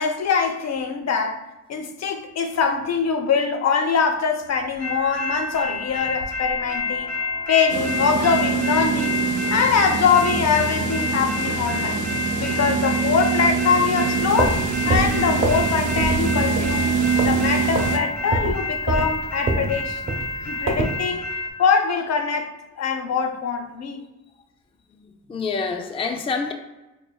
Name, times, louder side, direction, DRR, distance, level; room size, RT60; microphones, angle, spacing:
voice 1, 0.0-7.1 7.5-9.2 9.5-12.0 12.4-16.9 17.2-20.0 20.4-21.3 21.6-24.0, left 5 dB, 65° left, 0.6 m, -23 dB
sound 1, 4.8-21.5, left 3 dB, 90° left, 0.9 m, -29 dB
sound 2, 7.7-18.0, right 6 dB, 90° right, 0.5 m, -25 dB
sound 3, 14.2-15.7 16.0-16.3 16.6-17.4 17.7-18.0 18.3-21.0, right 3 dB, 45° right, 0.7 m, -25 dB
voice 2, 25.0-26.5, left 4 dB, 20° left, 0.3 m, -27 dB
5.4 x 2.7 x 2.2 m
cardioid pair, 100°, 29 cm